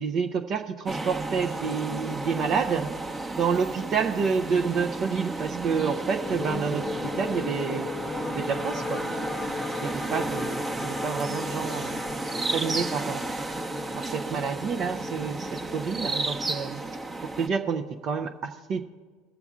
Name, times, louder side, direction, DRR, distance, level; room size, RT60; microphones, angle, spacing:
voice 1, 0.0-2.9 3.4-6.8 7.2-7.9 8.3-9.0 9.8-12.0 12.5-13.3 14.0-16.8 17.4-18.8, right 6 dB, 45° right, 5 dB, 0.6 m, -28 dB
sound 1, 0.9-17.5, right 2 dB, 20° right, 0.9 m, -33 dB
sound 2, 6.2-16.5, left 3 dB, 20° left, 0.8 m, -37 dB
19.0 x 6.9 x 3.6 m, 1.5 s
hypercardioid pair, 80°, 0 cm